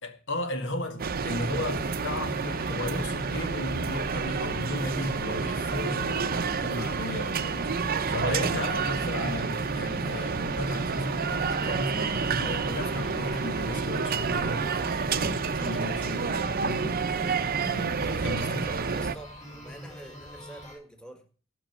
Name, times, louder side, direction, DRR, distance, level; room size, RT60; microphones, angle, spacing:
voice 1, 0.0-14.7 15.1-17.1 17.6-18.7, left 2 dB, 65° left, 1.9 m, -35 dB
sound 1, 1.0-19.2, right 5 dB, 45° right, 0.7 m, -29 dB
sound 2, 1.5-20.7, equal, 35° left, 6.6 m, -42 dB
voice 2, 18.0-21.3, right 1 dB, 5° left, 1.7 m, -47 dB
15.5 x 6.3 x 6.0 m
head